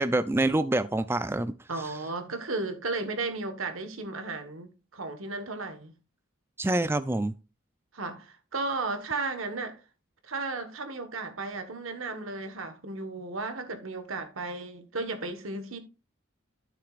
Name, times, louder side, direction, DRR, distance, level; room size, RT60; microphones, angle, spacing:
voice 1, 0.0-1.5 6.6-7.3, right 2 dB, 10° right, 0.3 m, -26 dB
voice 2, 1.7-5.9 7.9-9.8 10.2-15.8, right 3 dB, 90° right, 1.4 m, -34 dB
12.5 x 6.8 x 2.5 m
head